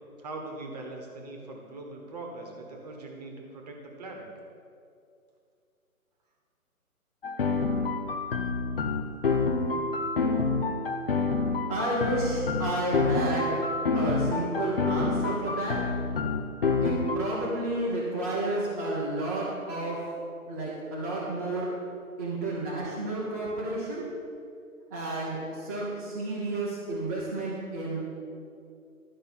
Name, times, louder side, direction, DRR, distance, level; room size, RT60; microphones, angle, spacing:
voice 1, 0.2-4.3, right 2 dB, 25° right, 2 dB, 1.3 m, -41 dB
sound 1, 7.2-17.2, left 4 dB, 40° left, 0.6 m, -28 dB
voice 2, 11.7-13.6 13.9-15.8 16.8-20.0 20.5-21.7 22.2-24.1 24.9-28.0, right 2 dB, 10° right, -9 dB, 0.8 m, -31 dB
11.5 x 5.5 x 7.3 m, 2.4 s
hypercardioid pair, 155°, 45 cm